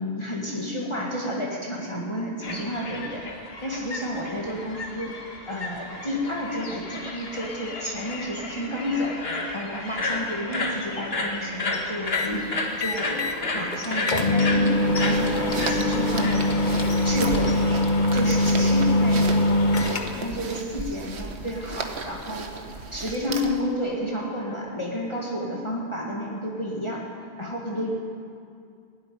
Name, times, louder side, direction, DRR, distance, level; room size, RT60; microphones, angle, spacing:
voice 1, 0.0-3.3 3.6-5.2 5.5-9.2 9.5-16.6 17.0-17.6 18.1-22.5 22.9-27.0 27.4-27.9, equal, 25° left, -3 dB, 1.7 m, -31 dB
sound 1, 2.4-17.6, left 2 dB, 65° left, 1.8 m, -33 dB
sound 2, 12.1-12.4 12.8-13.4 13.7-13.8 14.1-20.3, left 2 dB, 50° left, 1.1 m, -22 dB
sound 3, 14.7-23.7, right 4 dB, 80° right, 1.4 m, -35 dB
16.5 x 8.4 x 10.0 m, 2.4 s
omnidirectional pair, 1.1 m